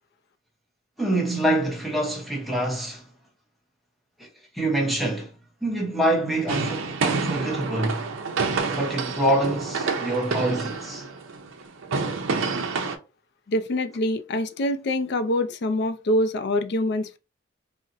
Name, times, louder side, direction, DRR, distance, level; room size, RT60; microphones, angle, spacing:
voice 1, 1.0-3.0 4.5-5.3 5.6-8.0 8.7-11.0, right 1 dB, ahead, 0.8 m, -25 dB
sound 1, 6.5-13.0, right 4 dB, 75° right, 0.6 m, -28 dB
voice 2, 13.5-17.2, left 1 dB, 55° left, 0.4 m, -25 dB
3.9 x 2.0 x 2.5 m
head